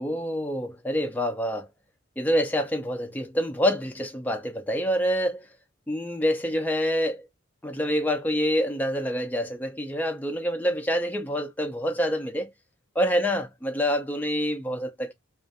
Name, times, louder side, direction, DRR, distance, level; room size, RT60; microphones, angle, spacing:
voice 1, 0.0-1.7 2.2-5.5 5.9-7.3 7.6-12.5 13.0-15.1, equal, 10° left, 0.3 m, -26 dB
2.4 x 2.3 x 2.5 m
head